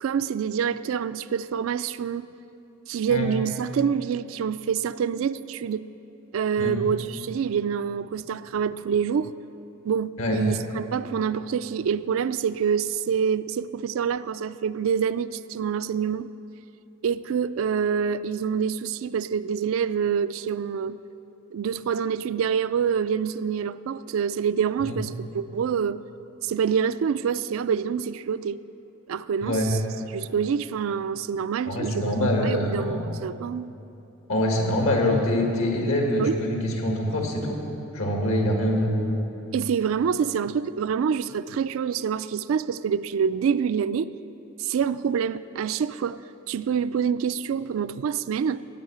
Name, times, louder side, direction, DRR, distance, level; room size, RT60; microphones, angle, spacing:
voice 1, 0.0-2.3 2.9-5.9 6.3-9.3 9.8-16.3 17.0-21.0 21.5-26.0 26.4-28.6 29.1-29.8 30.1-33.7 36.2-36.4 39.5-44.1 44.6-46.2 46.5-48.6, right 7 dB, 70° right, 15 dB, 0.3 m, -26 dB
voice 2, 29.4-29.7 31.7-33.0 34.3-37.6 37.9-39.1, left 1 dB, 80° left, 1 dB, 1.9 m, -24 dB
15.0 x 5.6 x 8.4 m, 2.9 s
head